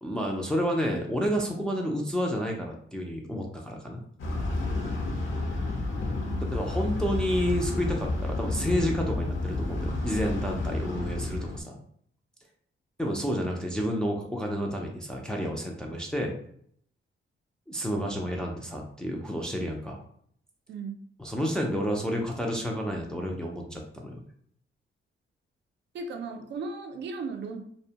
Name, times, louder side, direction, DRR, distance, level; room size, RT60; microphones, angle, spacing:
voice 1, 0.0-4.0 6.4-11.8 13.0-16.3 17.7-20.0 21.2-24.2, equal, 5° left, 0 dB, 0.4 m, -30 dB
sound 1, 4.2-11.6, left 2 dB, 70° left, 0.6 m, -30 dB
voice 2, 6.2-6.6 11.0-11.2 11.5-11.6 20.7-21.0 25.9-27.6, right 4 dB, 60° right, 6 dB, 0.4 m, -37 dB
2.6 x 2.1 x 2.8 m, 0.64 s
wide cardioid pair, 130°, 21 cm